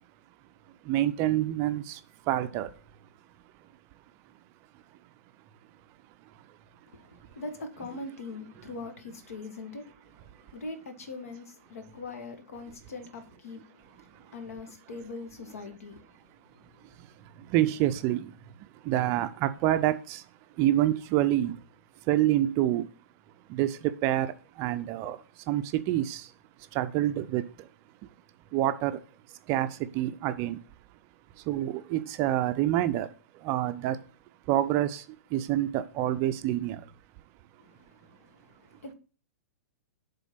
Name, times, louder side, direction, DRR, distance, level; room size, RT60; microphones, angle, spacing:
voice 1, 0.7-2.7 3.0-3.1 3.5-3.7 4.7-5.1 5.7-7.3 10.3-10.5 14.1-14.4 16.6-21.7 22.0-22.9 23.4-27.7 28.0-28.1 28.5-30.6 30.9-31.0 31.3-34.1 34.4-36.9, right 13 dB, 35° right, 0.5 m, -29 dB
voice 2, 6.9-17.2 37.6-38.9, left 3 dB, 65° left, 1.5 m, -43 dB
7.1 x 3.7 x 5.8 m
figure-of-eight pair, 110°, 8 cm